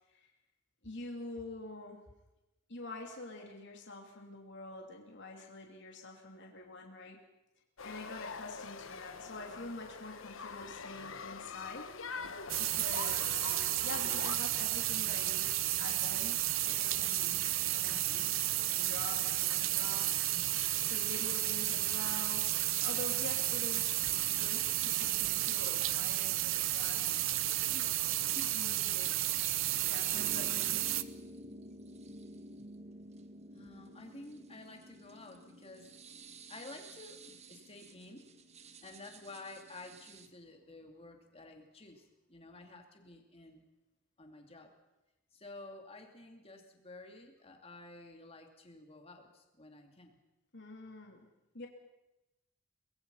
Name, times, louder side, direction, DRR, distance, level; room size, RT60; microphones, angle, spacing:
voice 1, 0.8-2.0 2.7-7.2 7.8-11.9 12.6-13.5 13.8-15.5 15.8-16.4 16.6-20.1 20.4-20.5 20.9-22.5 22.8-24.0 24.4-27.3 27.6-27.9 28.2-29.1 29.7-30.8 50.5-51.3 51.5-51.7, left 2 dB, 60° left, 1 dB, 3.0 m, -46 dB
sound 1, 7.8-14.4, left 5 dB, 85° left, 1.2 m, -44 dB
sound 2, 12.5-31.0, right 14 dB, 80° right, 0.8 m, -32 dB
sound 3, 24.1-40.3, right 2 dB, 35° right, 1.3 m, -52 dB
voice 2, 28.3-28.8 33.5-35.9 36.5-38.3 38.8-43.6 44.2-44.7 45.3-50.2, left 2 dB, 30° left, 3 dB, 2.8 m, -51 dB
24.0 x 21.0 x 5.7 m, 0.98 s
head